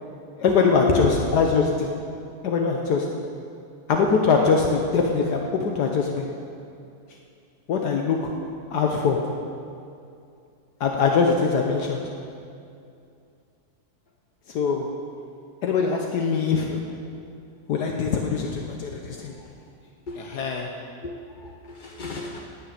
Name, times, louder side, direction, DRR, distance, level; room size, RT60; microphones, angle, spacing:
voice 1, 0.4-1.9 2.4-3.1 3.9-6.3 7.7-8.3 8.7-9.2 10.8-12.0 14.5-14.9 15.6-16.8 17.7-19.3 20.2-20.7, left 5 dB, 75° left, 2 dB, 1.5 m, -22 dB
voice 2, 0.9-1.4 19.4-19.5 20.1-20.3 21.0-22.4, left 3 dB, 40° left, 1 dB, 0.7 m, -30 dB
11.0 x 8.8 x 8.7 m, 2.5 s
omnidirectional pair, 1.8 m